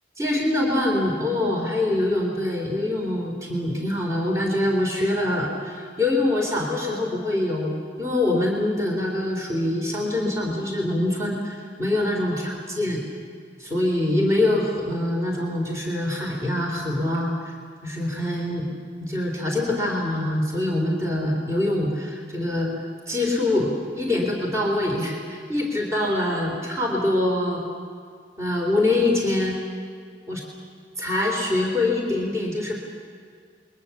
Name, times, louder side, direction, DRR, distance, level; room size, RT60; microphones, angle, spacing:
voice 1, 0.2-12.3 12.8-13.0 13.6-17.5 17.8-18.7 19.0-22.7 23.1-27.6 28.4-29.6 30.3-30.4 31.0-32.8, left 1 dB, 15° right, -1 dB, 3.5 m, -24 dB
28.5 x 22.5 x 7.2 m, 2.1 s
head